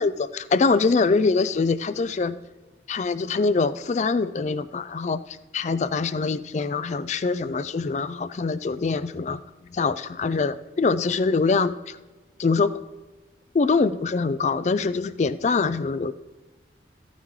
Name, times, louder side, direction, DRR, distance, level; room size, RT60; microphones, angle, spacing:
voice 1, 0.0-2.4 2.9-5.2 5.5-9.4 9.7-12.0 12.4-12.8 13.5-16.1, left 4 dB, 40° left, 14 dB, 0.3 m, -24 dB
15.5 x 9.3 x 3.2 m, 1.2 s
head